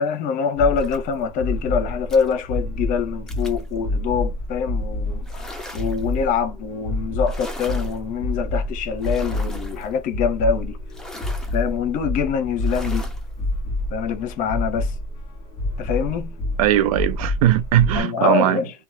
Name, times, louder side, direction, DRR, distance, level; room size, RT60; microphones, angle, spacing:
voice 1, 0.0-5.5 5.7-10.8 11.5-13.1 13.9-14.9 15.8-16.4 17.9-18.7, left 6 dB, 50° left, 0.7 m, -24 dB
sound 1, 0.6-18.0, left 1 dB, 30° left, 1.5 m, -28 dB
sound 2, 0.8-1.2 2.1-2.3 3.3-3.7 5.2-6.1 7.2-8.0 9.0-9.9 10.9-11.6 12.6-13.2, left 1 dB, 5° left, 0.7 m, -39 dB
voice 2, 16.6-18.6, right 13 dB, 85° right, 0.5 m, -19 dB
2.9 x 2.2 x 2.8 m
supercardioid pair, 115°, 18 cm